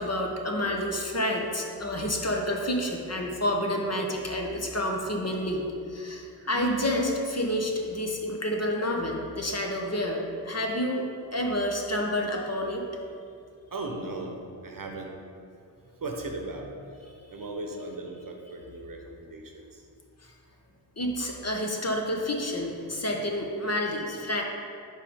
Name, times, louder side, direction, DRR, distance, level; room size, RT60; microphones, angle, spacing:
voice 1, 0.0-11.1 11.3-12.8 17.2-17.5 20.2-20.3 21.0-24.4, left 1 dB, 35° left, 1 dB, 1.0 m, -29 dB
Sigh, 6.4-7.0, equal, 25° right, 0.8 m, -37 dB
voice 2, 13.7-15.1 16.0-19.9, right 2 dB, 45° right, 2 dB, 1.0 m, -37 dB
4.8 x 4.5 x 5.2 m, 2.4 s
supercardioid pair, 40°, 46 cm